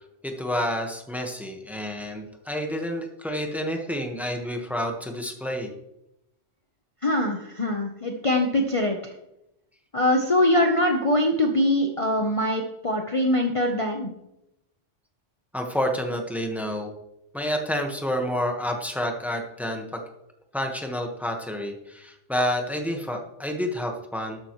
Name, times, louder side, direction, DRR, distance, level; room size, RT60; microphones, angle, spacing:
voice 1, 0.2-5.7 15.5-16.9 17.3-20.0 20.5-24.4, equal, ahead, 3 dB, 1.4 m, -29 dB
voice 2, 7.0-9.0 9.9-14.1, left 1 dB, 30° left, 1 dB, 1.0 m, -23 dB
13.0 x 11.0 x 3.2 m, 0.85 s
omnidirectional pair, 1.2 m